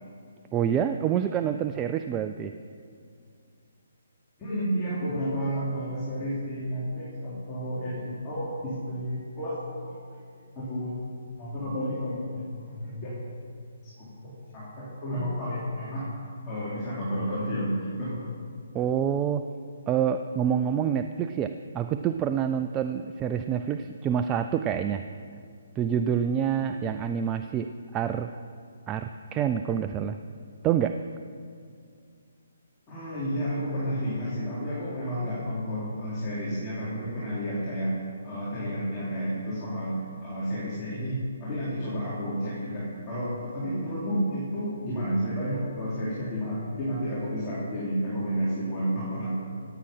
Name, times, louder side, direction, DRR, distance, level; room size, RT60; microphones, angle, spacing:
voice 1, 0.5-2.5 18.7-19.5 19.9-25.0 25.8-28.3 28.9-30.2 30.6-31.0, right 8 dB, 20° right, 8 dB, 0.4 m, -27 dB
voice 2, 4.4-9.9 10.5-11.0 11.4-13.2 13.8-14.1 14.5-16.1 16.5-18.2 32.9-49.3, equal, 20° left, -10 dB, 4.0 m, -31 dB
16.0 x 8.9 x 5.7 m, 2.3 s
hypercardioid pair, 145°, 0 cm